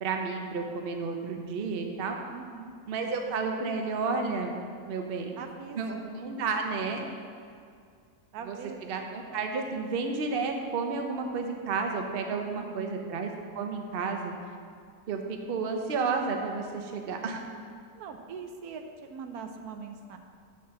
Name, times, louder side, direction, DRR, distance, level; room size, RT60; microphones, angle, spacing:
voice 1, 0.0-2.2 2.9-4.5 4.9-5.4 5.7-7.0 8.5-8.6 8.9-14.3 15.1-17.4, right 4 dB, 50° right, 3 dB, 0.9 m, -31 dB
voice 2, 2.3-2.7 5.4-6.0 8.3-8.8 12.5-12.9 17.9-20.2, right 5 dB, 90° right, 5 dB, 1.2 m, -42 dB
6.3 x 5.8 x 7.0 m, 2.3 s
omnidirectional pair, 1.6 m